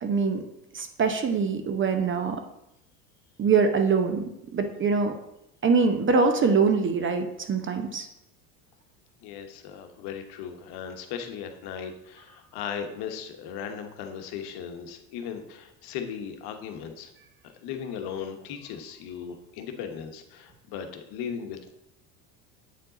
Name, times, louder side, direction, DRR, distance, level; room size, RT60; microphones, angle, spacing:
voice 1, 0.0-0.5 0.7-2.4 3.4-5.1 5.6-8.1, right 5 dB, 25° right, 7 dB, 0.7 m, -24 dB
voice 2, 9.2-17.1 17.4-21.7, left 7 dB, 55° left, 6 dB, 1.1 m, -37 dB
8.2 x 4.5 x 3.9 m, 0.84 s
hypercardioid pair, 80°, 46 cm